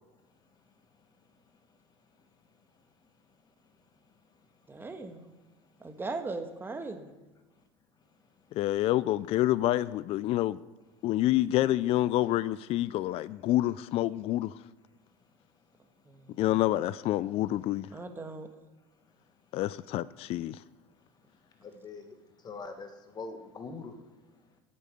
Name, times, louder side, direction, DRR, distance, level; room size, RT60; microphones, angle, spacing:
voice 1, 4.7-5.3 5.8-7.2 16.0-16.4 17.9-18.5, right 3 dB, 15° right, 1.4 m, -39 dB
voice 2, 8.5-10.6 11.0-14.5 16.4-17.9 19.5-20.6, left 15 dB, 45° left, 0.4 m, -27 dB
voice 3, 21.3-24.0, left 4 dB, 30° left, 1.7 m, -44 dB
9.0 x 8.4 x 6.5 m
supercardioid pair, 95°, 14 cm